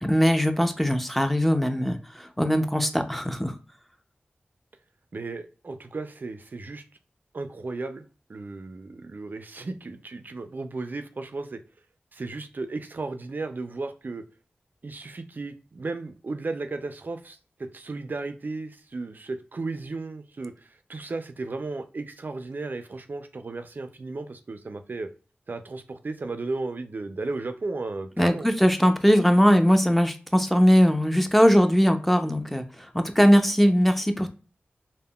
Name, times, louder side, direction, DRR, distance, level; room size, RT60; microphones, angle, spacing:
voice 1, 0.0-3.5 28.2-34.3, equal, 5° left, 7 dB, 0.5 m, -20 dB
voice 2, 5.1-6.8 7.3-8.0 8.3-11.6 12.1-14.2 14.8-25.1 25.5-28.5, right 3 dB, 55° right, 9 dB, 0.3 m, -35 dB
3.5 x 2.0 x 2.3 m, 0.36 s
cardioid pair, 45°, 4 cm